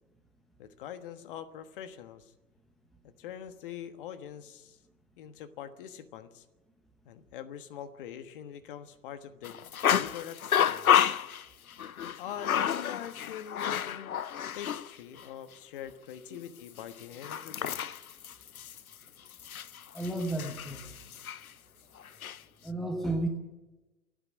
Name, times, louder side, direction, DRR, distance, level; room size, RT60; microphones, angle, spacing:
voice 1, 0.6-2.3 3.0-4.8 5.2-6.4 7.0-9.6 9.9-11.0 12.2-14.1 14.5-17.8, left 9 dB, 35° left, 11 dB, 1.4 m, -43 dB
sound 1, 9.4-14.9 15.2-15.3 16.8-21.5 22.0-22.4, left 9 dB, 65° left, 0.9 m, -30 dB
voice 2, 19.9-20.8 22.6-23.3, right 2 dB, ahead, 6 dB, 0.8 m, -32 dB
27.5 x 10.5 x 9.6 m, 1.1 s
figure-of-eight pair, 125°, 46 cm